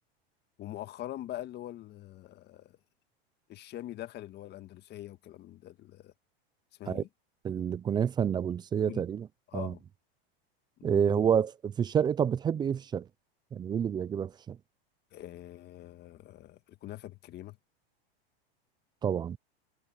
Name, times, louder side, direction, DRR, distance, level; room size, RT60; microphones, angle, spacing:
voice 1, 0.6-2.8 3.5-6.1 6.8-7.1 8.9-9.0 9.5-9.8 10.8-11.3 15.1-17.6, left 13 dB, 35° left, 1.7 m, -43 dB
voice 2, 7.4-9.3 9.5-9.7 10.8-13.1 13.5-14.6 19.0-19.4, right 8 dB, 15° right, 0.4 m, -28 dB
hypercardioid pair, 125°, 31 cm